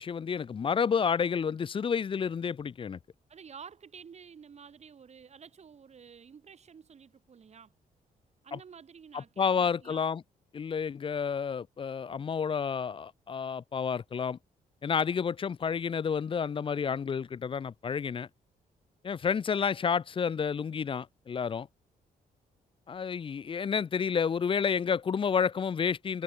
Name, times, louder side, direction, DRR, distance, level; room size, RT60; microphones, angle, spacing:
voice 1, 0.0-3.0 8.5-8.6 9.1-10.2 10.5-14.4 14.8-18.3 19.0-21.7 22.9-26.2, left 6 dB, 35° left, 0.6 m, -30 dB
voice 2, 3.3-7.7 8.4-10.0, right 6 dB, 45° right, 5.4 m, -51 dB
cardioid pair, 115°, 16 cm